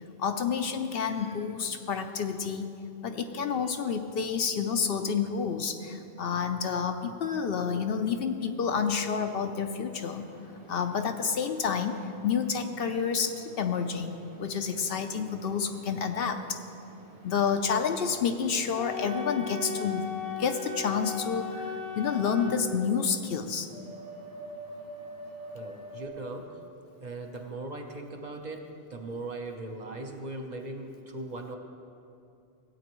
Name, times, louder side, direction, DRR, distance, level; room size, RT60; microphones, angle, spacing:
voice 1, 0.2-2.8 3.0-10.2 10.7-12.0 12.2-16.6 17.2-20.1 20.4-23.7, left 6 dB, 65° left, 6 dB, 0.7 m, -29 dB
sound 1, 9.9-26.1, right 1 dB, 75° right, 1.8 m, -49 dB
Wind instrument woodwind instrument, 18.7-22.6, left 4 dB, 90° left, 1.6 m, -36 dB
voice 2, 25.5-26.6 27.0-31.6, right 2 dB, 45° right, 2 dB, 0.8 m, -39 dB
17.0 x 8.4 x 3.0 m, 2.6 s
omnidirectional pair, 1.1 m